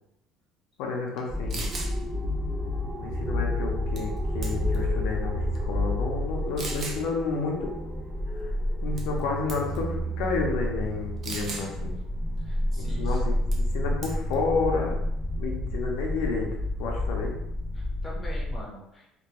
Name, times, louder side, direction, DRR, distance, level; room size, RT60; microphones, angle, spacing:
voice 1, 0.8-1.7 3.0-7.8 8.4-8.5 8.8-11.9 12.8-13.4 13.7-14.9 15.3-16.5 16.8-17.3, left 4 dB, 85° left, 0 dB, 0.5 m, -30 dB
sound 1, 1.2-1.3 1.5-1.9 4.0-4.2 4.4-4.8 5.5-5.6 6.6-7.0 9.0-9.2 9.5-9.8 11.2-11.7 13.5-13.7 14.0-14.3, right 3 dB, 40° right, 0.4 m, -36 dB
sound 2, 1.3-18.6, left 1 dB, 20° right, 1.3 m, -30 dB
voice 2, 12.4-13.2 17.7-19.2, equal, 15° left, -4 dB, 0.7 m, -43 dB
2.2 x 2.2 x 2.8 m, 0.81 s
cardioid pair, 150°, 0 cm